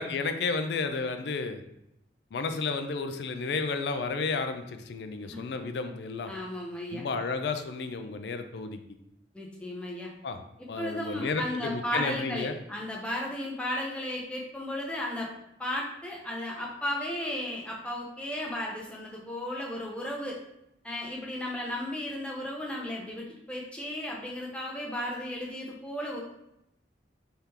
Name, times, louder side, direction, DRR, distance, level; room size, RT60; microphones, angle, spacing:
voice 1, 0.0-1.6 2.3-6.3 6.9-8.8 10.2-10.4 10.7-12.5, left 4 dB, 65° left, 8 dB, 0.4 m, -32 dB
voice 2, 6.3-7.1 9.3-10.1 10.8-15.3 15.6-20.4 20.8-26.2, left 1 dB, 5° left, -2 dB, 0.6 m, -34 dB
3.6 x 3.4 x 2.8 m, 0.82 s
head